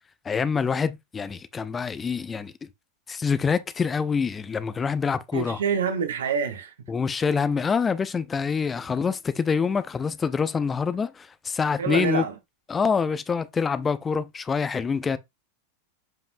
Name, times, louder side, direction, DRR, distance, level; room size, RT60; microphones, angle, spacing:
voice 1, 0.2-2.7 3.1-5.6 6.9-12.3 12.7-15.2, left 5 dB, 15° left, 0.6 m, -26 dB
voice 2, 5.3-6.7 11.8-12.3, right 7 dB, 60° right, 1.3 m, -26 dB
7.5 x 5.3 x 2.6 m
figure-of-eight pair, 90°, 0 cm